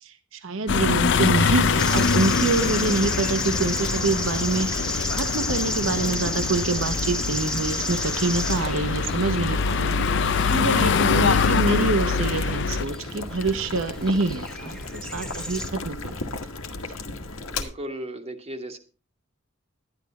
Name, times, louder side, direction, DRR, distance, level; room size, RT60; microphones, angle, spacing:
voice 1, 0.0-16.1, right 3 dB, 75° right, 10 dB, 0.8 m, -26 dB
sound 1, 0.7-12.8, left 5 dB, 60° left, 0.5 m, -24 dB
Boiling, 1.5-17.6, left 2 dB, 90° left, 1.5 m, -36 dB
sound 2, 1.8-15.7, left 1 dB, 5° left, 0.9 m, -33 dB
voice 2, 17.5-18.8, right 1 dB, 30° right, 4 dB, 1.1 m, -36 dB
11.5 x 10.5 x 4.1 m, 0.34 s
head